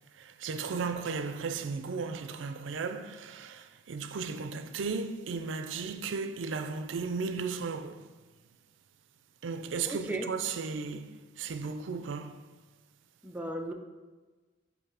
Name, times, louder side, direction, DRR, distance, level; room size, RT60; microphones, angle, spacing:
voice 1, 0.2-8.0 9.4-12.4, right 5 dB, 80° right, 0.4 m, -35 dB
voice 2, 9.9-10.3 13.2-13.7, right 1 dB, 10° right, 0.3 m, -35 dB
7.3 x 2.7 x 4.7 m
head